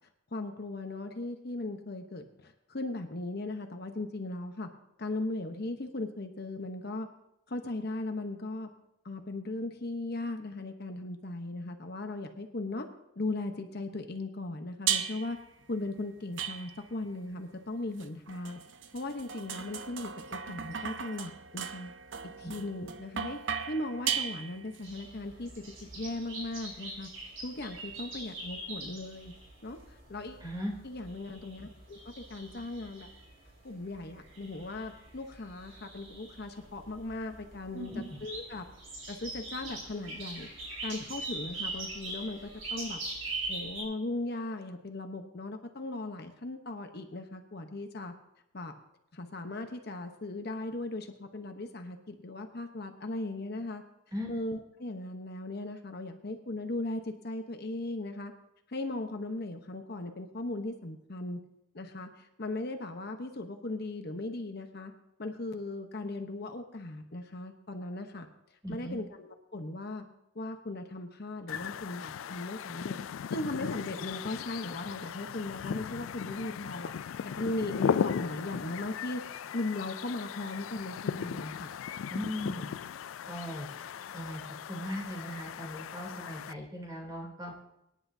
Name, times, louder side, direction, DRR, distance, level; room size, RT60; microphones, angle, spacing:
voice 1, 0.3-4.7 5.0-7.1 7.5-8.7 9.0-12.9 13.2-15.4 15.7-18.6 18.9-21.9 22.4-23.4 23.7-25.5 25.8-27.1 27.4-29.3 29.6-30.4 30.8-33.1 33.6-38.6 39.1-40.5 40.8-48.1 48.5-48.7 49.1-53.8 54.3-58.3 58.7-61.4 61.7-64.9 65.2-68.3 68.7-70.0 70.3-73.0 73.3-76.9 77.2-79.2 79.5-81.7, left 2 dB, 55° left, 5 dB, 1.0 m, -38 dB
sound 1, 14.9-15.4 16.4-17.0 18.0-24.8, right 8 dB, 70° right, 0.7 m, -36 dB
sound 2, 24.8-43.8, right 2 dB, 85° right, 4.7 m, -43 dB
voice 2, 30.4-30.7 37.7-38.2 54.1-54.3 68.6-69.0 82.1-82.7 83.3-83.7 84.1-84.4 84.7-87.5, equal, 20° right, -2 dB, 3.1 m, -38 dB
sound 3, 71.5-86.5, left 7 dB, 90° left, 0.3 m, -37 dB
24.0 x 10.0 x 2.7 m, 0.86 s
head